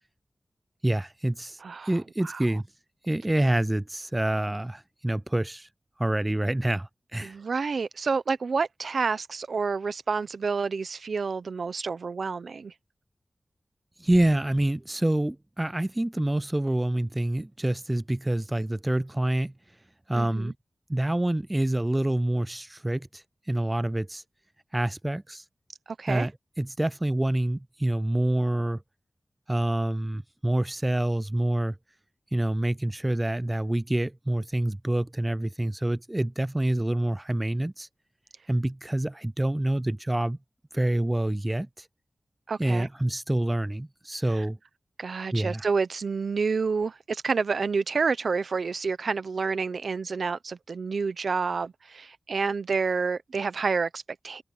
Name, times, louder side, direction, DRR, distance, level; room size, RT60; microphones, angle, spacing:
voice 1, 0.8-1.6 1.9-2.6 3.1-5.7 6.0-7.4 14.0-19.5 20.1-20.5 20.9-24.2 24.7-25.4 26.1-26.3 26.6-28.8 29.5-31.8 32.3-37.9 38.5-40.4 40.7-41.9 42.6-44.6 45.3-45.7, right 1 dB, 20° right, 0.4 m, -27 dB
voice 2, 7.2-12.7 20.1-20.5 26.0-26.3 42.5-42.9 44.3-44.4 45.0-54.4, right 5 dB, 85° right, 0.9 m, -29 dB
open air
cardioid pair, 55°, 0 cm